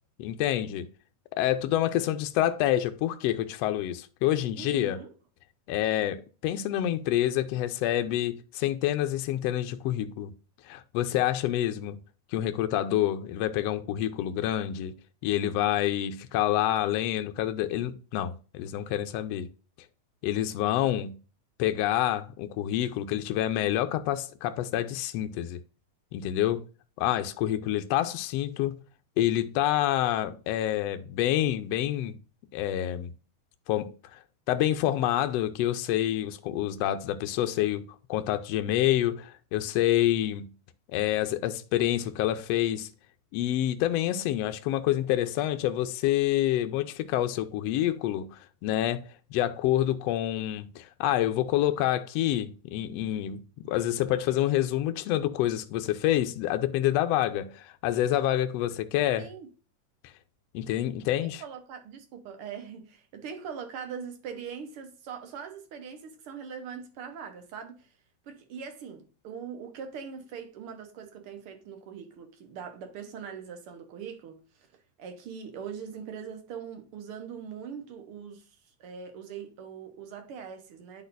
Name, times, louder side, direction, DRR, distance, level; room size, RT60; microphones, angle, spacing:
voice 1, 0.2-0.9 1.4-5.0 5.7-10.3 10.6-12.0 12.3-15.0 15.2-19.5 20.2-21.2 21.6-25.6 26.1-26.7 27.0-28.8 29.2-32.2 32.5-33.1 33.7-34.2 34.5-40.5 40.9-42.9 43.3-59.3 60.5-61.4, left 13 dB, 75° left, 1.5 m, -27 dB
voice 2, 4.6-5.1 59.2-59.5 61.2-67.9 68.3-74.7 75.0-78.5 78.8-81.0, right 7 dB, 55° right, 1.7 m, -41 dB
11.0 x 4.1 x 2.6 m
omnidirectional pair, 3.5 m